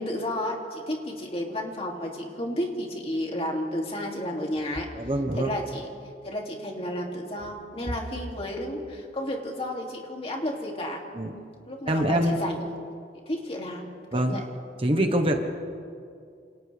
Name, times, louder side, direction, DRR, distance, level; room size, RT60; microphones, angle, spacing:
voice 1, 0.0-4.9 5.4-5.9 6.2-11.0 11.7-12.7 13.3-14.4, left 1 dB, 35° left, 0 dB, 2.8 m, -32 dB
voice 2, 4.9-5.6 11.1-11.3 11.9-12.4 14.1-14.4 14.8-15.4, right 1 dB, 30° right, 4 dB, 1.3 m, -24 dB
29.0 x 28.0 x 3.5 m, 2.3 s
head